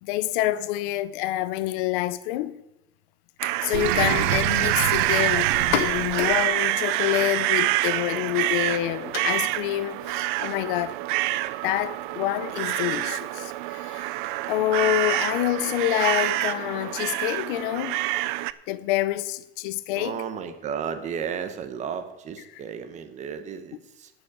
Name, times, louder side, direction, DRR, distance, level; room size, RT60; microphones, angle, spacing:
voice 1, 0.0-2.6 3.4-10.9 11.6-14.1 14.5-18.0 18.7-20.2, left 15 dB, 55° left, 0.6 m, -27 dB
sound 1, 3.4-18.5, right 17 dB, 55° right, 0.5 m, -26 dB
Sink (filling or washing), 3.7-6.5, right 11 dB, 75° right, 0.9 m, -29 dB
sound 2, 5.5-13.0, left 7 dB, 75° left, 1.8 m, -37 dB
voice 2, 19.9-24.1, right 7 dB, 25° right, 0.9 m, -33 dB
11.5 x 5.4 x 8.5 m
supercardioid pair, 150°, 31 cm